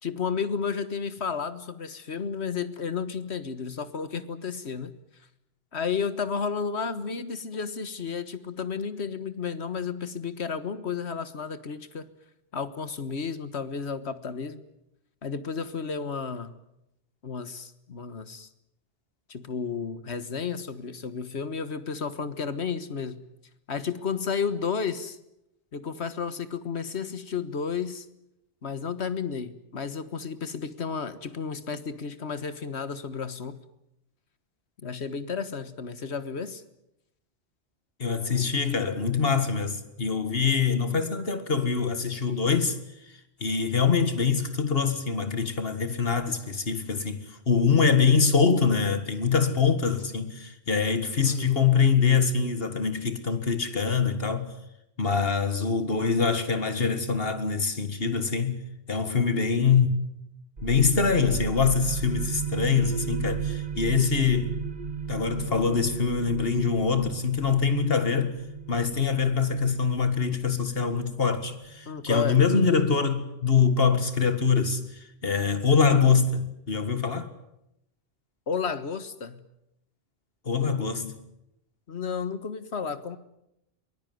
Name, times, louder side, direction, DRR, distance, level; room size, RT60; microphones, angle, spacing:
voice 1, 0.0-4.9 5.7-12.0 12.5-14.6 15.2-16.5 17.2-18.5 19.3-23.2 23.7-25.2 25.7-28.0 28.6-33.6 34.8-36.6 51.2-51.6 71.8-72.4 78.5-79.4 81.9-83.2, left 6 dB, 90° left, 1.7 m, -32 dB
voice 2, 38.0-42.8 43.4-54.5 55.0-58.6 58.9-60.0 60.6-64.5 65.1-68.4 68.7-77.3 80.5-81.2, left 5 dB, 65° left, 2.2 m, -24 dB
sound 1, 60.6-71.9, right 6 dB, 50° right, 1.7 m, -35 dB
23.5 x 20.5 x 9.4 m
omnidirectional pair, 1.1 m